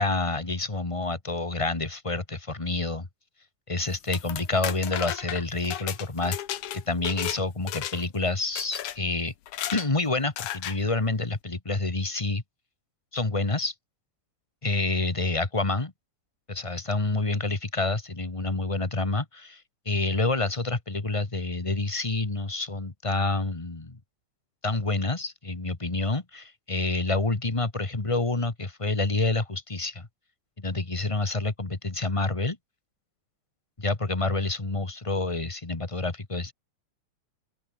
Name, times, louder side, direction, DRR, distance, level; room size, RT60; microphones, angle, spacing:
voice 1, 0.0-3.1 3.7-6.4 6.7-9.3 9.7-12.4 13.1-13.7 14.6-15.9 16.5-24.0 24.6-30.1 30.6-32.6 33.8-36.5, left 3 dB, 20° left, 0.7 m, -28 dB
sound 1, 3.9-7.4 7.7-8.2 8.6-9.0 9.5-9.9 10.4-10.8, left 12 dB, 75° left, 2.7 m, -34 dB
open air
omnidirectional pair, 3.6 m